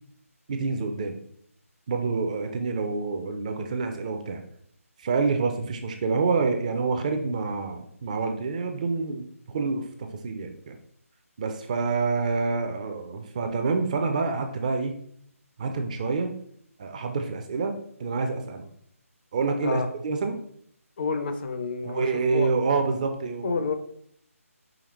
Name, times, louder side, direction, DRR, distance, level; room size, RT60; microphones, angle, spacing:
voice 1, 0.5-1.2 1.9-4.4 5.0-10.8 11.4-15.0 15.6-16.3 16.8-18.7 19.3-20.4 21.8-23.7, right 4 dB, 30° right, 5 dB, 0.5 m, -27 dB
voice 2, 21.0-22.1 22.3-22.5 23.4-23.7, left 4 dB, 40° left, 7 dB, 0.5 m, -29 dB
4.9 x 3.4 x 3.0 m, 0.66 s
figure-of-eight pair, 150°, 8 cm